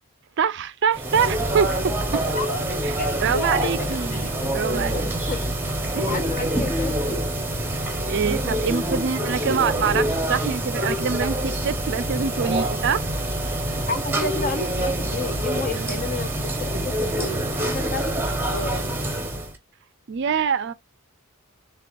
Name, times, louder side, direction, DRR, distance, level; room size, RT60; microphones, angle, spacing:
voice 1, 0.4-2.4 2.8-5.1 5.9-6.2 8.1-13.1 15.7-16.0 20.1-20.7, right 6 dB, 55° right, 0.4 m, -25 dB
sound 1, 0.9-19.6, right 1 dB, 10° right, 0.9 m, -26 dB
voice 2, 2.2-2.6 3.0-3.7 4.2-4.3 4.9-5.4 6.0-7.2 13.9-18.2 18.5-18.8, left 3 dB, 40° left, 0.7 m, -31 dB
6.7 x 2.3 x 2.4 m
head